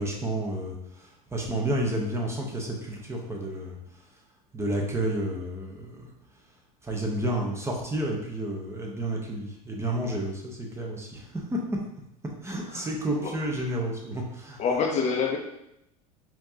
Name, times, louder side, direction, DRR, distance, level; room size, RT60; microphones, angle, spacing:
voice 1, 0.0-3.8 4.5-6.1 6.8-11.6 12.4-14.6, right 1 dB, 15° right, -1 dB, 0.9 m, -31 dB
voice 2, 14.6-15.4, left 5 dB, 40° left, 2 dB, 0.6 m, -26 dB
4.3 x 2.8 x 2.8 m, 0.82 s
hypercardioid pair, 90°, 19 cm